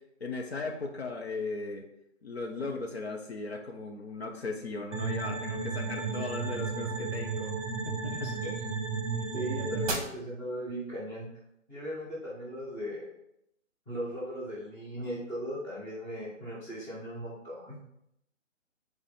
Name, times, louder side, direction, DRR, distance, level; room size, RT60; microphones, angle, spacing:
voice 1, 0.2-1.8 2.2-7.5 7.9-8.4, left 3 dB, 55° left, 3 dB, 0.9 m, -37 dB
sound 1, 4.9-9.9, right 4 dB, 30° right, 1.3 m, -33 dB
voice 2, 8.0-8.6 9.3-11.3 11.7-13.1 13.9-17.7, equal, 5° left, -8 dB, 1.0 m, -38 dB
4.9 x 4.2 x 5.0 m, 0.78 s
figure-of-eight pair, 145°, 39 cm